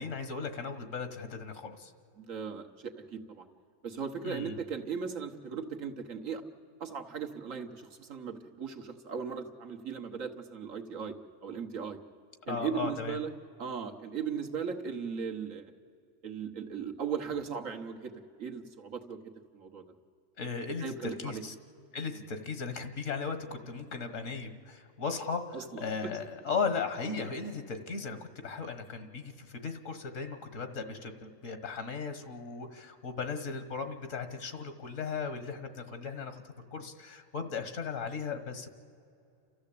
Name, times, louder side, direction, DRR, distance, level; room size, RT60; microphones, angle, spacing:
voice 1, 0.0-1.9 4.2-4.6 12.4-13.2 20.4-21.5 21.9-38.7, left 5 dB, 75° left, 9 dB, 1.8 m, -37 dB
voice 2, 2.2-3.5 3.8-6.4 6.8-11.1 11.4-12.0 12.5-13.3 13.6-15.7 16.2-18.1 18.4-19.2 19.5-19.8 20.8-21.4 25.5-26.1 27.2-27.3, right 6 dB, 80° right, 3 dB, 1.7 m, -37 dB
29.5 x 13.5 x 8.5 m, 2.6 s
omnidirectional pair, 1.3 m